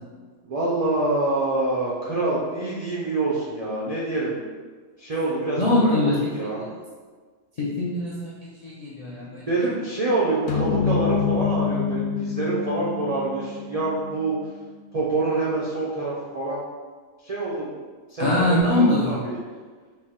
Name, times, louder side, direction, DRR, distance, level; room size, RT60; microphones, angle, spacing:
voice 1, 0.4-4.4 5.0-6.6 9.1-14.4 14.9-16.6 17.2-17.8 18.1-19.4, right 2 dB, 80° right, -6 dB, 0.3 m, -26 dB
voice 2, 5.6-6.3 7.6-8.3 8.6-9.4 18.2-19.2, left 1 dB, 65° left, -7 dB, 0.4 m, -22 dB
sound 1, 10.5-15.1, left 6 dB, 85° left, 1.0 m, -27 dB
4.3 x 2.1 x 3.6 m, 1.5 s
omnidirectional pair, 1.4 m